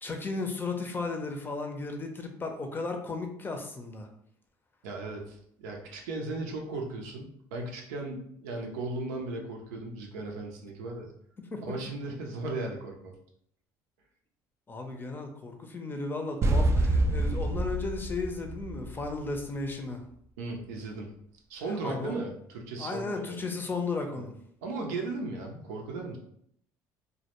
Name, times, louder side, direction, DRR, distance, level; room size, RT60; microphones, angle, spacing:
voice 1, 0.0-4.1 11.5-11.8 14.7-20.0 21.8-22.2 22.8-24.3, left 3 dB, 25° left, 4 dB, 0.5 m, -35 dB
voice 2, 4.8-11.1 11.6-13.1 20.4-21.1 21.5-23.5 24.1-24.3 24.6-26.2, right 2 dB, 90° right, 1 dB, 0.5 m, -36 dB
sound 1, 16.4-19.4, right 1 dB, 35° right, 0.3 m, -27 dB
2.1 x 2.1 x 2.9 m, 0.68 s
supercardioid pair, 80°, 9 cm